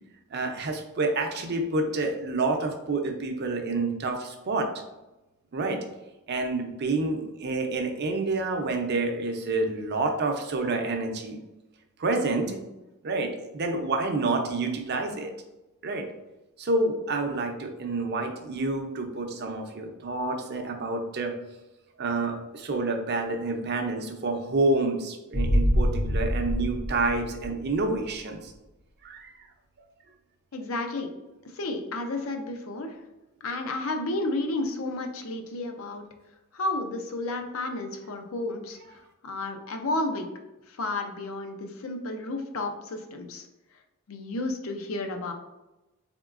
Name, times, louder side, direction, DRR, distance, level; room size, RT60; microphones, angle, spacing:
voice 1, 0.3-4.7 5.5-5.8 6.3-11.4 12.0-12.6 13.0-15.3 15.8-16.1 16.6-21.3 22.0-28.5 29.0-29.3, right 2 dB, 50° right, 4 dB, 0.6 m, -28 dB
sound 1, 25.3-28.0 28.3-28.4, equal, 25° left, 0.4 m, -26 dB
voice 2, 30.5-31.1 31.5-33.0 33.4-36.0 36.5-38.8 39.2-40.3 40.7-43.5 44.1-45.3, left 2 dB, 70° left, 5 dB, 0.6 m, -32 dB
3.9 x 3.6 x 2.4 m, 0.98 s
head